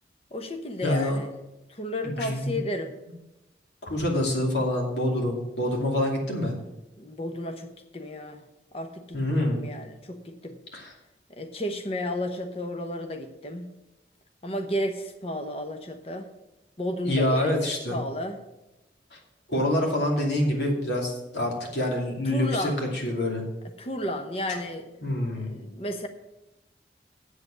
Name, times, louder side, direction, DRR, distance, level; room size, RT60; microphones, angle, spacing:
voice 1, 0.3-1.3 1.7-2.9 7.0-8.4 8.7-10.6 11.3-13.7 14.4-16.3 16.8-17.5 17.9-18.4 22.2-22.8 23.8-24.9 25.4-26.1, left 1 dB, 30° left, 7 dB, 0.9 m, -33 dB
voice 2, 0.8-1.2 2.0-2.5 3.8-6.5 9.1-9.6 10.7-10.9 17.1-18.0 19.1-19.2 19.5-22.7 23.0-23.4 25.0-25.5, left 1 dB, 70° left, 0 dB, 2.6 m, -26 dB
8.1 x 7.7 x 7.5 m, 0.97 s
head